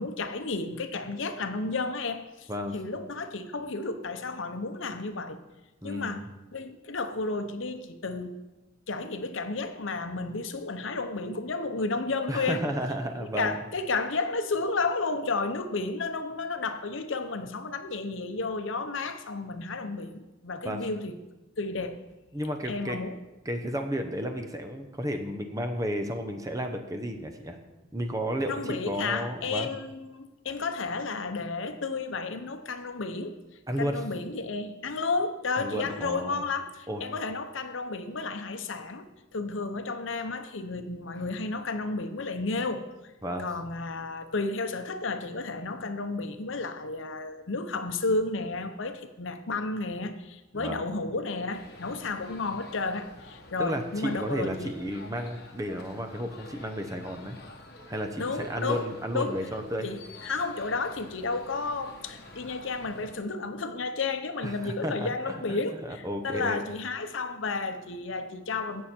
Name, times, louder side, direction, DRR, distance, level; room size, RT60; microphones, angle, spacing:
voice 1, 0.0-5.4 5.8-6.2 6.5-8.4 8.9-12.6 13.2-21.2 21.6-22.0 22.7-23.2 28.5-33.4 33.8-42.8 43.4-54.7 58.2-58.9 59.1-59.4 59.8-68.8, left 3 dB, 70° left, 9 dB, 0.8 m, -32 dB
voice 2, 5.8-6.2 12.3-13.6 20.6-20.8 22.3-23.0 23.4-27.6 27.9-29.7 33.7-34.0 35.6-36.4 36.9-37.0 43.2-43.5 50.5-50.9 53.6-57.4 57.9-59.9 64.4-66.6, equal, 15° right, 5 dB, 0.8 m, -32 dB
sound 1, 51.5-63.1, left 2 dB, 50° left, 1.4 m, -49 dB
16.0 x 6.4 x 4.4 m, 1.1 s
head